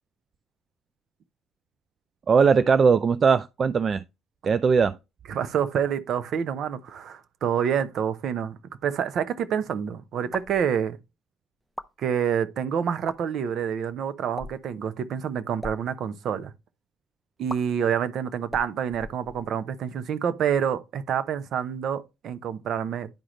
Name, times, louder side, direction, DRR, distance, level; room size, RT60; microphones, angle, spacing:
voice 1, 2.3-4.0 4.4-5.0, right 5 dB, 45° right, 0.4 m, -20 dB
voice 2, 5.3-11.0 12.0-16.5 17.4-23.1, right 8 dB, 60° right, 0.8 m, -27 dB
sound 1, 10.3-10.6 11.6-11.9 12.9-13.2 14.3-14.7 15.5-15.8 17.5-17.6 18.5-19.6, equal, ahead, 0.7 m, -38 dB
10.5 x 4.9 x 3.1 m
hypercardioid pair, 50°, 0 cm